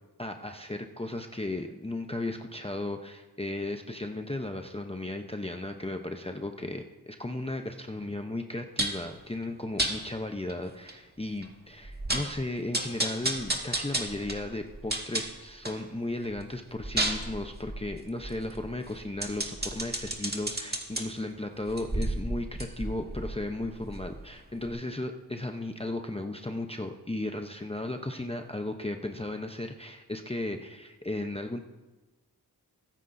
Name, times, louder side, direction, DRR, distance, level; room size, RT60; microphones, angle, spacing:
voice 1, 0.2-31.6, left 2 dB, 15° left, 4 dB, 0.7 m, -35 dB
sound 1, 8.8-9.1 9.8-9.9 10.5-10.6 10.9-11.0 11.4-11.5 11.8-12.4 12.7-15.8 16.2-21.0 21.6-24.3 24.7-24.8, right 1 dB, 25° right, 1.9 m, -32 dB
22.5 x 9.6 x 2.7 m, 1.1 s
wide cardioid pair, 45°, 40 cm